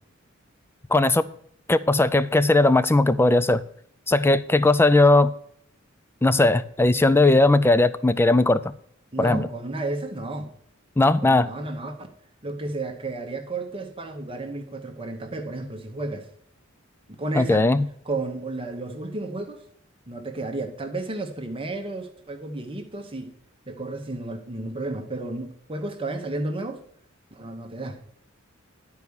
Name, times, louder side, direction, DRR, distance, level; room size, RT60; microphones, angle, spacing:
voice 1, 0.9-1.3 1.7-3.6 4.1-5.3 6.2-8.6 9.2-9.5 11.0-11.5 17.4-17.8, left 2 dB, 10° left, 0.4 m, -18 dB
voice 2, 9.1-10.5 11.2-12.0 12.4-16.3 17.2-17.7 18.0-19.6 20.1-23.4 23.7-26.8 27.3-28.0, right 2 dB, 25° right, 1.0 m, -32 dB
11.0 x 4.7 x 6.9 m
head